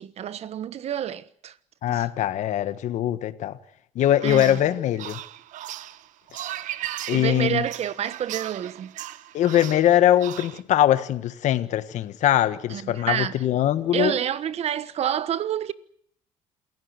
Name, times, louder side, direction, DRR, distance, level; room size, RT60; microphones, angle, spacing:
voice 1, 0.0-1.6 1.9-2.1 4.2-4.6 7.1-8.9 12.7-13.4 13.9-15.7, right 10 dB, 50° right, 1.3 m, -28 dB
voice 2, 1.8-3.6 3.9-5.2 7.1-7.6 9.3-14.1, left 12 dB, 65° left, 1.4 m, -22 dB
sound 1, 4.0-10.6, right 13 dB, 70° right, 1.2 m, -37 dB
28.0 x 15.5 x 9.7 m
cardioid pair, 120°, 13 cm